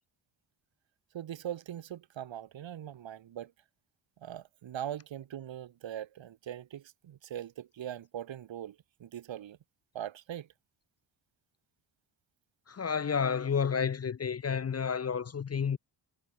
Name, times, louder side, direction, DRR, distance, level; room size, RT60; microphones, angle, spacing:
voice 1, 1.1-3.5 4.2-9.6 9.9-10.5, right 11 dB, 85° right, 2.5 m, -41 dB
voice 2, 12.7-15.8, left 6 dB, 35° left, 0.8 m, -30 dB
wide cardioid pair, 120°, 44 cm